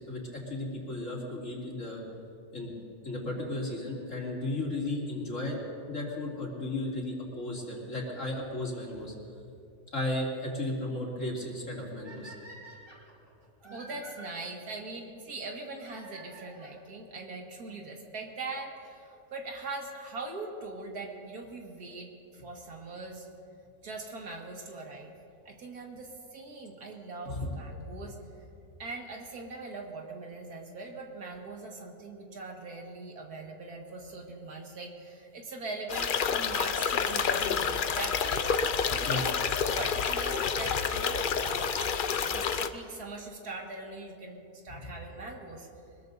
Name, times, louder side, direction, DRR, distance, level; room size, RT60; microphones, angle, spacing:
voice 1, 0.0-2.0 2.5-2.7 3.0-5.6 5.9-9.1 9.9-12.3 27.2-27.5 39.0-39.2, left 1 dB, 50° left, -3 dB, 3.2 m, -34 dB
sound 1, 12.0-14.3 15.7-16.8 17.7-17.8 18.5-18.6 18.8-18.9 20.8-21.0 23.9-24.0 25.0-25.1 26.5-26.6 26.9-27.0 27.2-27.3 27.5-27.6 27.8-27.9 28.1-28.2 28.4-28.5, right 2 dB, 50° right, 3.7 m, -50 dB
voice 2, 13.6-23.3 23.8-25.2 25.5-28.2 28.8-45.7, right 3 dB, 75° right, 1 dB, 2.3 m, -41 dB
sound 2, 35.9-42.7, left 6 dB, 70° left, 0.5 m, -29 dB
24.0 x 21.0 x 2.7 m, 2.7 s
omnidirectional pair, 1.6 m